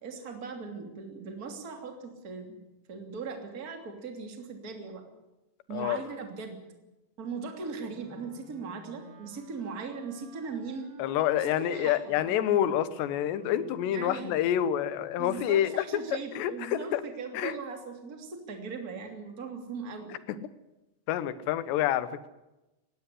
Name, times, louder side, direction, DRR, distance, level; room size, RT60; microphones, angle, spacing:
voice 1, 0.0-5.0 5.7-6.6 7.2-10.9 11.4-12.4 13.9-14.3 15.2-20.1, right 5 dB, 25° right, 4 dB, 2.7 m, -39 dB
Wind instrument woodwind instrument, 7.8-15.2, right 2 dB, 75° right, 6.0 m, -52 dB
voice 2, 11.0-15.9 16.4-17.0 17.3-17.5 21.1-22.3, left 11 dB, 75° left, 14 dB, 3.2 m, -27 dB
20.0 x 15.5 x 9.9 m, 1.0 s
omnidirectional pair, 5.2 m